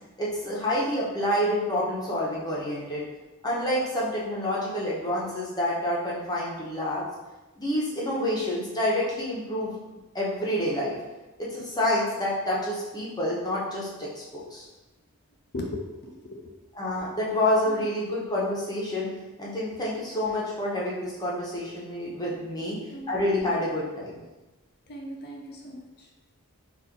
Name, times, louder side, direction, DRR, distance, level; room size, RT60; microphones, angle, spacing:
voice 1, 0.2-3.0 3.4-7.0 7.6-9.7 10.1-11.0 11.4-14.6 16.8-19.1 19.4-22.8 23.1-24.2, left 1 dB, 20° left, -6 dB, 1.1 m, -28 dB
voice 2, 15.5-16.5 17.7-17.9 22.6-23.1 24.9-26.1, left 1 dB, 45° left, 0 dB, 0.6 m, -38 dB
4.3 x 2.7 x 3.9 m, 1.1 s
head